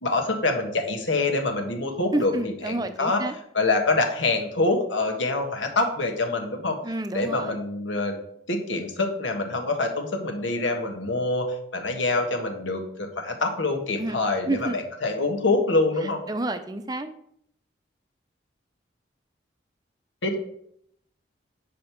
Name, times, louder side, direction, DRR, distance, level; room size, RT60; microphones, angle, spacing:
voice 1, 0.0-2.3 2.6-3.2 3.5-6.8 7.1-8.2 8.5-16.2 20.2-20.4, left 2 dB, 85° left, 4 dB, 1.4 m, -25 dB
voice 2, 2.1-3.3 6.8-7.6 14.0-14.2 14.4-14.8 16.0-17.1, right 2 dB, 20° right, 9 dB, 0.6 m, -29 dB
8.7 x 5.2 x 4.6 m, 0.72 s
head